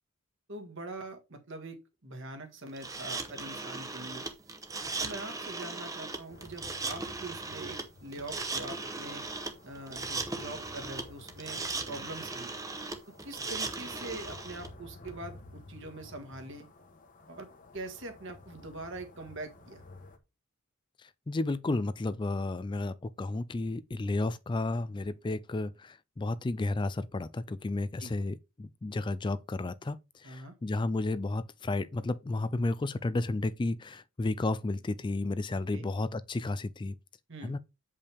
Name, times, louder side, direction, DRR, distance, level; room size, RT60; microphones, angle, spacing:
voice 1, 0.5-4.2 5.0-9.2 9.6-12.5 13.2-16.7 17.3-17.5 17.7-19.8 28.0-28.1 30.2-30.5 35.7-35.9 37.3-37.6, right 2 dB, 55° right, 1.8 m, -43 dB
sound 1, 2.8-14.7, right 3 dB, 15° right, 0.9 m, -38 dB
sound 2, 6.3-20.2, left 2 dB, 35° left, 1.1 m, -52 dB
voice 2, 21.3-30.0 30.2-37.0 37.4-37.6, left 2 dB, 20° left, 0.3 m, -32 dB
8.4 x 5.4 x 3.5 m
head